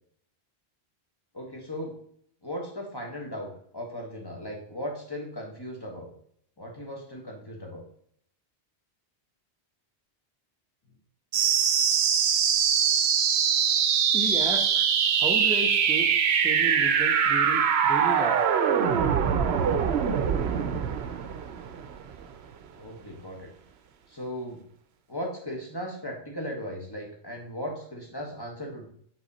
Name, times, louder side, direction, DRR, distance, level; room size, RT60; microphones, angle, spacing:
voice 1, 1.3-1.9 2.4-6.1 6.6-7.8 22.8-23.5 24.1-24.6 25.1-28.9, equal, 20° left, 0 dB, 1.3 m, -37 dB
sound 1, 11.3-22.3, right 7 dB, 75° right, 0.9 m, -23 dB
voice 2, 14.1-14.9 15.2-18.5, right 1 dB, 5° right, 0 dB, 0.7 m, -34 dB
8.0 x 3.6 x 4.1 m, 0.64 s
omnidirectional pair, 1.1 m